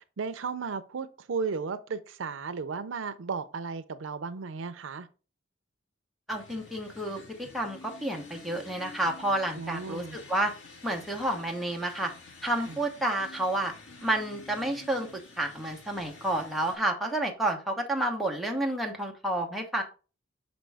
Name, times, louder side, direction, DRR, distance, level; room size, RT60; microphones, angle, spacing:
voice 1, 0.0-5.1 9.6-10.2 12.7-12.8, right 5 dB, 85° right, 0.5 m, -35 dB
sound 1, 6.3-16.8, left 3 dB, 90° left, 1.9 m, -49 dB
voice 2, 6.3-10.5 10.8-12.1 12.4-13.7 14.0-19.8, right 1 dB, ahead, 1.0 m, -30 dB
6.0 x 5.1 x 3.4 m
head